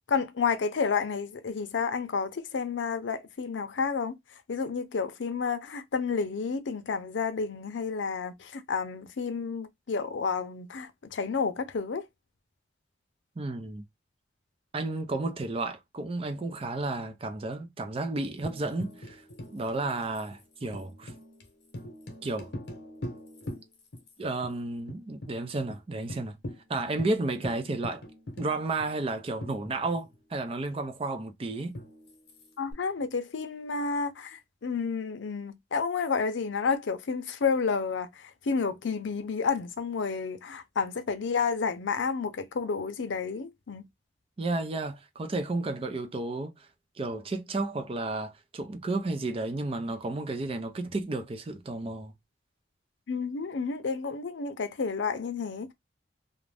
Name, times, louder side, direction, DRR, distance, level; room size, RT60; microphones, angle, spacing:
voice 1, 0.1-4.1 4.5-12.1 32.6-43.8 53.1-55.7, left 5 dB, 90° left, 0.5 m, -30 dB
voice 2, 13.4-13.8 14.7-19.2 19.5-21.1 22.2-22.5 24.2-26.4 26.7-28.0 28.4-31.8 44.4-46.5 47.0-52.1, right 2 dB, 30° right, 0.4 m, -32 dB
Tambourine, 18.4-24.1 24.4-24.5 24.9-25.3 25.7-25.8 26.1-30.2 31.7-32.7, left 1 dB, 65° left, 0.8 m, -43 dB
2.5 x 2.1 x 3.3 m
head